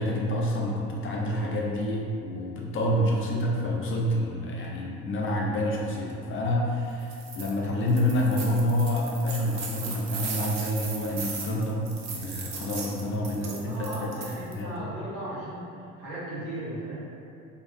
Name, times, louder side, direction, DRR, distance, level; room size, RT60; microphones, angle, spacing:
voice 1, 0.0-14.1 14.4-14.9, left 1 dB, 30° left, -2 dB, 0.4 m, -28 dB
sound 1, 7.0-7.5 7.9-14.6, right 5 dB, 40° right, 0.5 m, -37 dB
voice 2, 13.3-15.7 16.0-17.0, right 1 dB, 65° right, -9 dB, 1.0 m, -36 dB
2.6 x 2.3 x 2.4 m, 2.6 s
hypercardioid pair, 50°, 42 cm